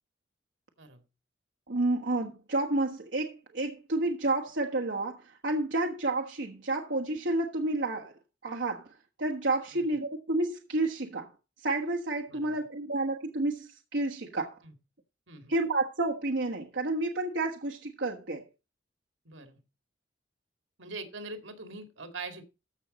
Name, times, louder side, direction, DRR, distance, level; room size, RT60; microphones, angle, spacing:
voice 1, 1.7-8.1 8.4-8.9 9.2-11.3 11.6-14.6 15.5-18.4, right 2 dB, 65° right, 1.4 m, -30 dB
voice 2, 12.3-12.7 14.6-14.7 15.3-15.5 19.3-19.6 20.8-22.4, right 3 dB, 85° right, 2.2 m, -43 dB
14.5 x 6.3 x 4.2 m
head